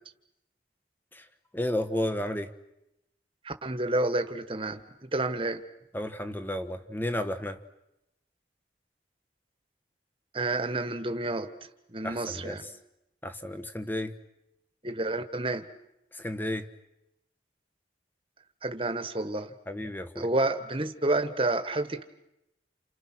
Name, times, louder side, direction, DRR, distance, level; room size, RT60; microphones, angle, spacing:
voice 1, 1.5-2.5 5.9-7.6 12.0-12.7 13.2-14.2 16.1-16.7 19.7-20.3, left 1 dB, 10° left, 9 dB, 1.3 m, -32 dB
voice 2, 3.4-5.6 10.3-11.5 11.9-12.7 14.8-15.6 18.6-19.5 20.2-22.0, right 2 dB, 30° right, 8 dB, 1.5 m, -29 dB
30.0 x 28.5 x 6.2 m, 0.86 s
head